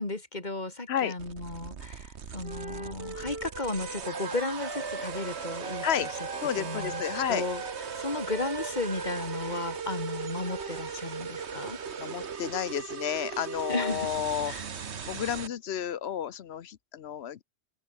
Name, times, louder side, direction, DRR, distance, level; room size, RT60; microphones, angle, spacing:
voice 1, 0.0-6.1 6.6-7.0 7.3-7.6 8.0-11.8 13.7-14.1 14.4-14.7, left 2 dB, 40° left, 3.2 m, -34 dB
sound 1, 1.2-15.5, right 6 dB, 80° right, 1.6 m, -38 dB
Wind instrument woodwind instrument, 2.4-6.5 6.7-10.9, right 2 dB, 65° right, 4.7 m, -41 dB
voice 2, 6.4-7.4 12.0-14.5 15.1-17.4, left 9 dB, 70° left, 1.0 m, -31 dB
omnidirectional pair, 1.1 m